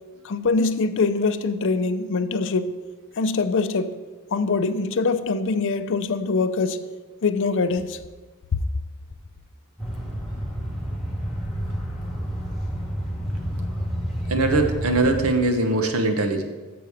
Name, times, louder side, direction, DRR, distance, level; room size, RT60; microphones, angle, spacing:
voice 1, 0.2-2.8 3.2-4.0 4.3-6.8 7.2-8.0 8.5-8.6, left 4 dB, 60° left, 0.5 m, -23 dB
sound 1, 9.8-15.3, equal, ahead, 1.8 m, -29 dB
voice 2, 14.3-16.4, right 2 dB, 75° right, 0.9 m, -21 dB
6.8 x 4.9 x 7.0 m
head